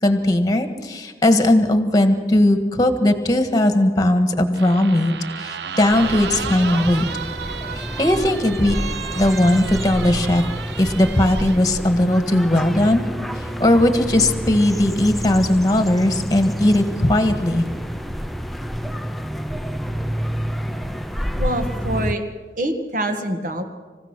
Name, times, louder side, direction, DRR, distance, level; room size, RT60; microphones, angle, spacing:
voice 1, 0.0-7.0 7.7-8.8 9.1-10.5 10.8-13.1 13.4-17.6, left 1 dB, 20° left, 7 dB, 1.5 m, -18 dB
sound 1, 4.5-11.6, right 7 dB, 75° right, 0.7 m, -33 dB
sound 2, 5.9-22.1, equal, ahead, 0.6 m, -29 dB
voice 2, 21.4-22.2 22.6-23.6, right 1 dB, 50° right, 6 dB, 1.7 m, -25 dB
27.0 x 15.5 x 6.1 m, 1.5 s
head